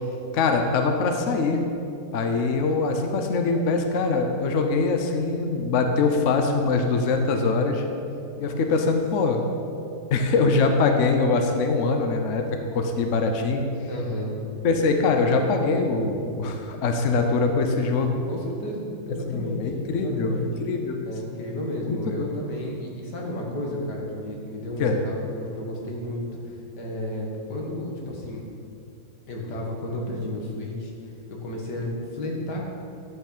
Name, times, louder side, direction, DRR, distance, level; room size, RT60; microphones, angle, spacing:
voice 1, 0.3-1.6 2.1-7.8 8.4-9.4 10.1-12.4 12.7-13.7 14.6-18.2 19.3-21.1 21.8-22.4 24.8-25.0, left 4 dB, 55° left, 4 dB, 1.1 m, -23 dB
voice 2, 13.9-14.4 18.3-20.5 21.1-28.4 29.3-30.9 31.3-32.6, left 1 dB, 85° left, -1 dB, 2.3 m, -32 dB
11.0 x 5.9 x 6.7 m, 2.6 s
omnidirectional pair, 1.8 m